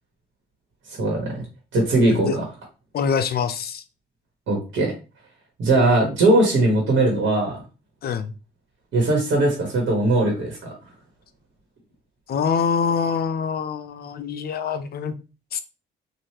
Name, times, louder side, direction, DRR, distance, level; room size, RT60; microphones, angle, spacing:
voice 1, 1.0-1.4 1.7-2.4 4.5-4.9 5.6-7.6 8.9-10.7, right 2 dB, 70° right, -1 dB, 1.4 m, -20 dB
voice 2, 2.9-3.8 8.0-8.3 12.3-15.2 15.5-15.6, left 6 dB, 50° left, 11 dB, 0.5 m, -25 dB
3.2 x 2.5 x 2.9 m, 0.31 s
cardioid pair, 90°, 20 cm